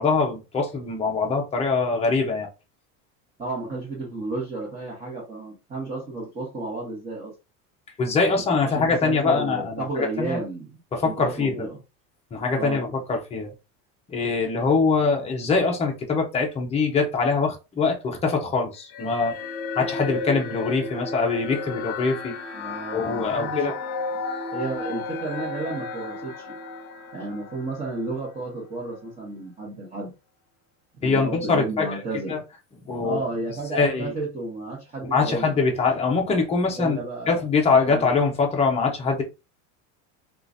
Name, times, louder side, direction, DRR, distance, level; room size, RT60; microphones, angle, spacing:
voice 1, 0.0-2.5 8.0-10.4 10.9-11.7 12.3-13.5 14.1-19.4 19.7-22.3 22.9-23.7 31.0-32.0 32.3-32.4 32.8-33.2 33.7-34.1 35.0-37.0 37.3-39.2, left 4 dB, 15° left, 0.6 m, -23 dB
voice 2, 3.4-7.3 8.7-11.8 12.5-12.8 22.5-23.6 24.1-24.2 24.5-26.6 27.1-30.1 30.9-32.4 33.0-35.6 36.7-37.4 37.9-38.1, right 2 dB, 20° right, 1.2 m, -32 dB
sound 1, 18.9-28.4, left 3 dB, 55° left, 0.6 m, -33 dB
3.7 x 2.5 x 2.5 m
supercardioid pair, 150°, 44 cm